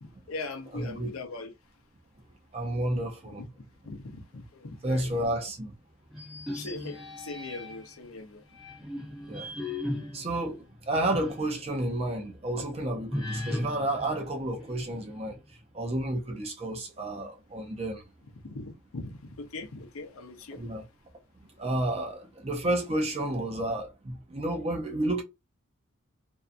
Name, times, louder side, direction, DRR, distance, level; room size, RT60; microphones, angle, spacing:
voice 1, 0.0-1.5 3.4-3.5 3.8-5.1 6.5-8.4 18.4-20.7, left 3 dB, 85° left, 0.6 m, -40 dB
voice 2, 0.7-1.2 2.5-3.4 4.8-5.7 9.3-9.5 10.1-15.4 15.7-18.0 20.5-20.8 21.4-25.2, right 1 dB, 30° right, 0.5 m, -31 dB
sound 1, 6.1-8.0 8.5-11.5 11.9-12.0 13.1-15.2, left 1 dB, ahead, 0.9 m, -37 dB
2.6 x 2.2 x 2.5 m
head